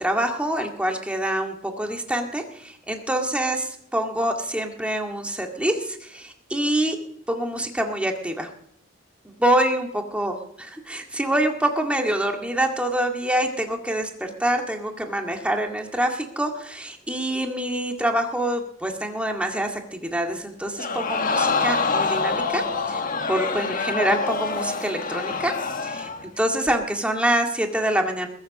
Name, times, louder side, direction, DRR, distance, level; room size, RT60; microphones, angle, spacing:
voice 1, 0.0-7.0 7.3-8.5 9.4-10.4 10.9-25.5 25.8-28.3, right 1 dB, 5° right, 3 dB, 2.0 m, -25 dB
Crowd, 20.8-26.2 26.7-26.8, left 4 dB, 45° left, 1.5 m, -26 dB
21.0 x 8.0 x 6.5 m, 0.67 s
head